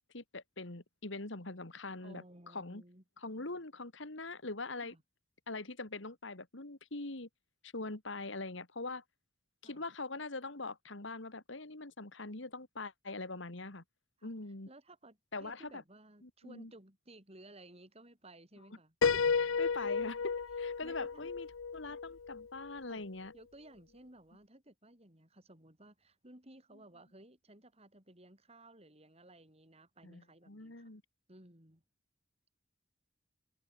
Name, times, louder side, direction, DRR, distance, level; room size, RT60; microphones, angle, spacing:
voice 1, 0.1-2.2 2.5-2.8 3.2-5.0 5.5-7.3 7.6-9.0 9.6-13.8 14.2-14.7 15.3-15.8 16.2-16.7 19.1-21.5 21.7-23.3 30.0-31.0, left 3 dB, 70° left, 2.3 m, -43 dB
voice 2, 2.0-3.0 4.8-5.0 9.6-9.8 14.2-14.3 14.7-18.9 19.8-20.1 20.8-21.3 22.9-23.0 23.3-30.9 31.3-31.8, right 1 dB, 30° right, 5.8 m, -57 dB
Piano, 19.0-22.8, left 5 dB, 85° left, 0.6 m, -33 dB
head